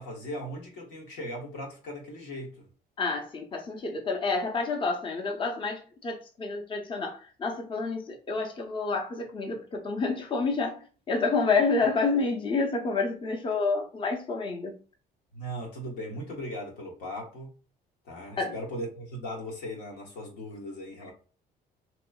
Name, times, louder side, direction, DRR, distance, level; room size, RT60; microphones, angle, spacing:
voice 1, 0.0-2.7 15.3-17.6 18.0-21.1, equal, 90° left, 1.1 m, -38 dB
voice 2, 3.0-14.8 18.4-18.5, left 4 dB, 30° left, 0.6 m, -29 dB
2.9 x 2.4 x 2.3 m
cardioid pair, 110°, 17 cm